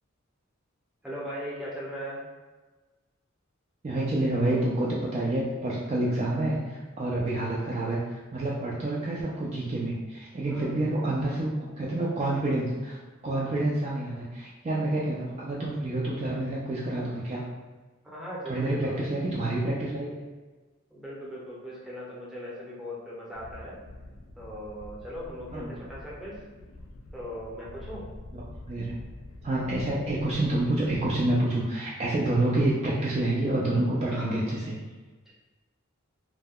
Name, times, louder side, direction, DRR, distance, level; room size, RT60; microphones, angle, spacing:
voice 1, 1.0-2.2 10.4-10.8 18.0-19.1 20.9-23.8 24.4-26.4 27.1-28.1 34.1-34.4 35.3-35.4, equal, ahead, -7 dB, 0.7 m, -39 dB
voice 2, 3.8-13.0 13.2-17.4 18.5-20.2 25.5-25.8 28.3-28.4 28.7-29.0 29.4-34.8, right 1 dB, 30° right, -5 dB, 0.4 m, -28 dB
sound 1, 23.3-31.3, left 1 dB, 80° left, 0.4 m, -46 dB
2.2 x 2.2 x 3.4 m, 1.3 s
head